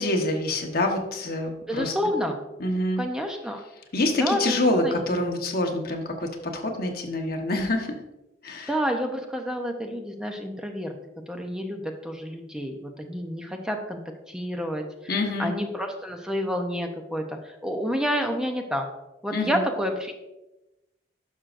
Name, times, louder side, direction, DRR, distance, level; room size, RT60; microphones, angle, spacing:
voice 1, 0.0-1.9 2.6-3.0 3.9-7.9 8.4-8.7 15.1-15.5 19.3-19.6, left 2 dB, 60° left, 3 dB, 1.2 m, -26 dB
voice 2, 1.7-2.4 3.0-3.6 4.2-4.9 8.7-10.9 11.3-14.0 14.3-18.9 19.2-20.2, equal, 5° right, 3 dB, 0.7 m, -29 dB
11.0 x 6.2 x 2.5 m, 0.97 s
head